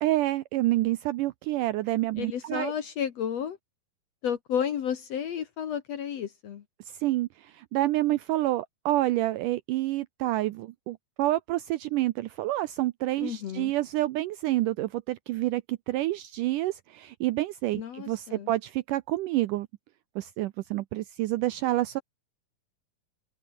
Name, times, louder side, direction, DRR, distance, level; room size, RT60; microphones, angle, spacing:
voice 1, 0.0-2.7 7.0-19.7 20.2-22.0, right 16 dB, 80° right, 1.9 m, -28 dB
voice 2, 2.2-3.6 4.2-6.6 13.2-13.7 17.7-18.5, left 8 dB, 60° left, 1.9 m, -32 dB
omnidirectional pair, 4.4 m